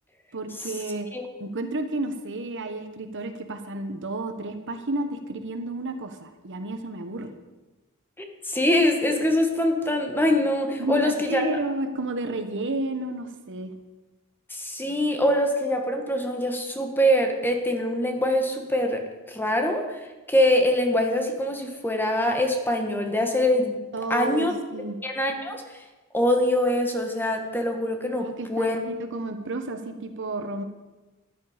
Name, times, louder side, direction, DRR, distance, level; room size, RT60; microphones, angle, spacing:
voice 1, 0.3-1.1 1.4-7.3 10.8-13.7 23.9-25.0 28.2-30.6, right 2 dB, 55° right, 7 dB, 1.2 m, -31 dB
voice 2, 8.2-11.4 14.5-23.8 24.1-24.5 25.0-25.6 26.1-28.8, left 1 dB, 10° left, 4 dB, 1.5 m, -24 dB
13.5 x 11.5 x 5.1 m, 1.1 s
head